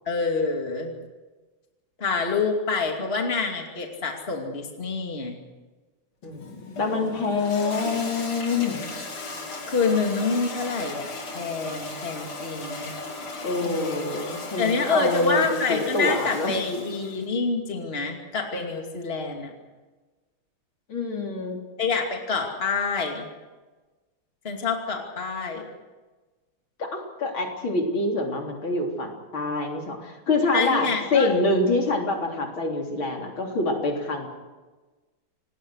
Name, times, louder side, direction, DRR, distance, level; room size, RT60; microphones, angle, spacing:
voice 1, 0.1-0.9 2.0-5.3 9.7-12.9 13.6-14.1 14.6-19.5 21.8-23.3 24.4-25.7 30.5-31.4, left 4 dB, 25° left, 2 dB, 2.7 m, -27 dB
Toilet flush, 6.2-17.3, left 2 dB, 90° left, 4.0 m, -37 dB
voice 2, 6.2-8.9 13.4-16.6 20.9-21.6 26.8-34.3, left 3 dB, 70° left, 1 dB, 4.3 m, -26 dB
28.0 x 19.5 x 6.4 m, 1.3 s
omnidirectional pair, 2.3 m